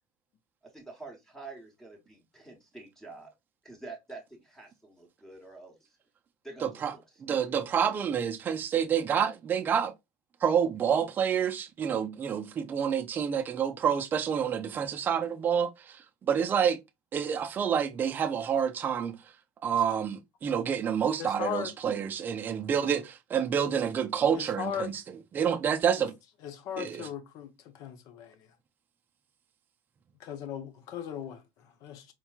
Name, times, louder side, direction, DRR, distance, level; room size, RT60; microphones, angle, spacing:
voice 1, 0.6-3.3 3.6-5.7 6.4-7.6, right 3 dB, 5° left, 1.1 m, -47 dB
voice 2, 6.6-6.9 7.2-9.9 10.4-16.0 16.3-16.8 17.1-19.2 19.6-24.9 25.3-26.1 26.8-27.1, right 8 dB, 25° right, 0.4 m, -28 dB
voice 3, 21.2-21.7 24.3-24.9 26.0-26.1 26.4-28.5 30.2-32.1, left 9 dB, 55° left, 0.7 m, -38 dB
4.4 x 2.9 x 2.3 m
cardioid pair, 140°, 7 cm